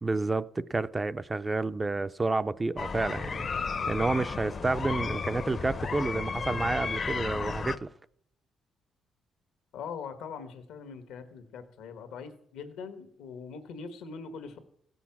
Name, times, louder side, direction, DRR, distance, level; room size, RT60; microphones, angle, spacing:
voice 1, 0.0-3.5 3.9-7.9, right 3 dB, 20° right, 0.4 m, -30 dB
sound 1, 2.8-7.8, left 5 dB, 40° left, 0.6 m, -33 dB
voice 2, 9.7-14.6, left 5 dB, 90° left, 1.4 m, -42 dB
16.0 x 6.2 x 5.9 m
cardioid pair, 90°, 0 cm